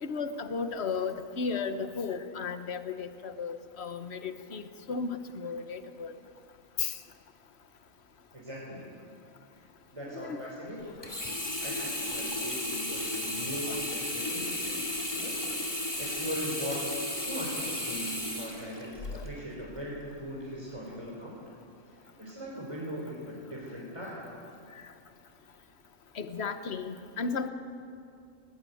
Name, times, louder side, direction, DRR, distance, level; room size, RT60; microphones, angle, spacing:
voice 1, 0.0-4.6 4.9-6.1 6.8-6.9 10.1-10.4 13.7-13.8 14.4-14.5 19.1-19.2 26.2-27.5, left 5 dB, 55° left, 9 dB, 1.4 m, -34 dB
voice 2, 8.3-8.9 9.9-11.0 11.6-14.8 15.1-15.5 16.0-16.9 17.3-21.4 22.2-24.3, equal, 20° right, -6 dB, 4.2 m, -40 dB
Sink (filling or washing), 11.0-19.3 19.8-19.9, left 1 dB, 20° left, 2.4 m, -34 dB
19.5 x 19.5 x 9.4 m, 2.5 s
omnidirectional pair, 1.4 m